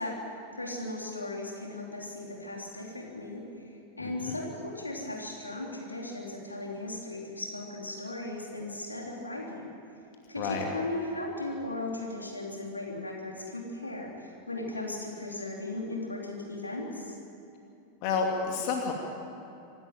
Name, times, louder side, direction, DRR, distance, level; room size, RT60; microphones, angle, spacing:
voice 1, 0.0-9.7 10.3-17.1, left 2 dB, 80° left, -1 dB, 3.8 m, -37 dB
voice 2, 4.0-4.4 10.4-10.7 18.0-18.9, left 5 dB, 45° left, 1 dB, 2.5 m, -30 dB
26.0 x 12.5 x 9.1 m, 2.8 s
figure-of-eight pair, 90°, 0 cm